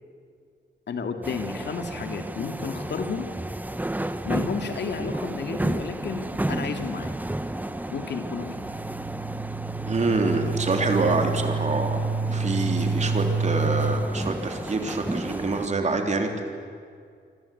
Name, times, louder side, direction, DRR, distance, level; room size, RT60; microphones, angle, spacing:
voice 1, 0.9-3.3 4.2-7.1 7.9-8.6, left 5 dB, 70° left, 6 dB, 2.4 m, -32 dB
sound 1, 1.2-15.7, right 1 dB, 10° right, 0.9 m, -33 dB
sound 2, 8.2-14.0, right 4 dB, 80° right, 2.3 m, -28 dB
voice 2, 9.9-12.0 12.3-16.3, right 3 dB, 40° right, 4 dB, 3.5 m, -26 dB
27.5 x 25.0 x 8.6 m, 2.2 s
wide cardioid pair, 140°, 19 cm